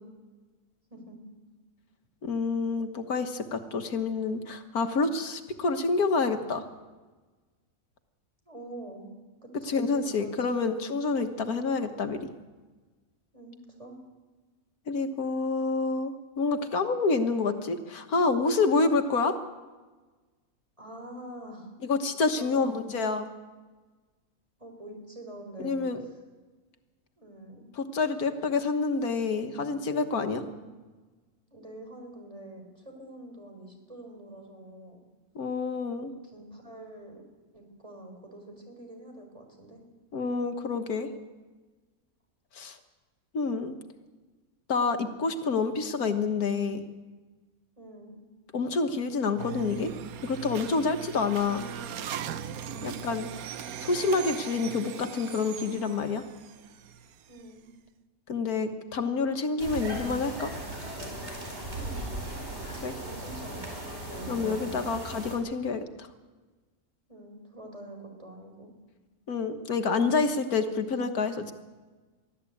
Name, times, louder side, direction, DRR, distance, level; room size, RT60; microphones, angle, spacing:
voice 1, 0.9-1.2 8.5-9.1 9.4-10.5 11.3-11.5 13.3-14.0 20.8-21.7 22.3-22.8 24.6-25.8 27.2-27.6 30.3-30.7 31.5-35.0 36.2-37.2 37.5-39.8 47.8-48.2 51.0-51.4 52.6-53.1 57.3-57.7 61.8-62.0 63.0-64.7 67.1-68.7, right 1 dB, 20° right, 3 dB, 4.7 m, -45 dB
voice 2, 2.2-6.7 9.6-12.3 14.9-19.4 21.8-23.3 25.6-26.0 27.8-30.4 35.4-36.1 40.1-41.1 42.6-42.8 43.3-43.8 44.7-46.8 48.5-49.9 50.2-51.6 52.8-53.3 53.8-56.2 58.3-60.5 62.8-63.0 64.3-66.1 69.3-71.5, left 4 dB, 85° left, 7 dB, 1.8 m, -28 dB
sound 1, 49.4-57.5, right 8 dB, 75° right, 1.2 m, -39 dB
sound 2, 59.6-65.4, right 1 dB, 45° right, 4.9 m, -37 dB
23.0 x 14.5 x 8.5 m, 1.3 s
omnidirectional pair, 1.6 m